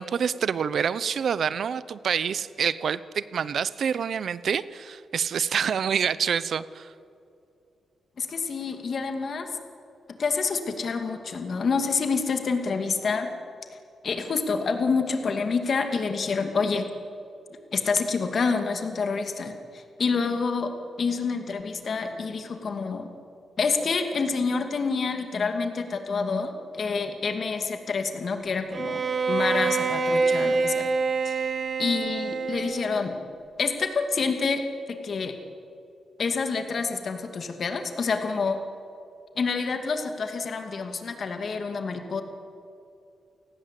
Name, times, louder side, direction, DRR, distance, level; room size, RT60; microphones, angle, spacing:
voice 1, 0.0-6.9, right 7 dB, 60° right, 16 dB, 0.8 m, -27 dB
voice 2, 8.2-9.5 10.2-13.3 14.0-16.9 17.7-20.7 21.0-23.1 23.6-30.9 31.2-31.5 31.8-33.2 33.6-34.6 35.0-35.3 36.2-38.6 39.4-42.2, left 4 dB, 50° left, 6 dB, 2.5 m, -27 dB
Bowed string instrument, 28.7-33.1, right 4 dB, 40° right, 1.6 m, -26 dB
29.0 x 19.0 x 8.4 m, 2.6 s
wide cardioid pair, 145°, 0 cm